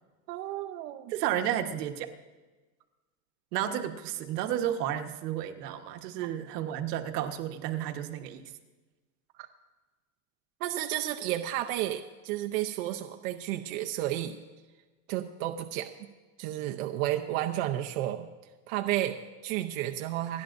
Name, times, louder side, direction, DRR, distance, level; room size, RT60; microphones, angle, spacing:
voice 1, 0.3-1.1 10.6-14.4 15.1-15.9 16.4-18.3 18.7-20.4, right 13 dB, 60° right, 4 dB, 0.8 m, -32 dB
voice 2, 1.1-2.1 3.5-8.4, right 11 dB, 80° right, 5 dB, 1.4 m, -32 dB
28.5 x 10.5 x 2.6 m, 1.2 s
supercardioid pair, 175°, 47 cm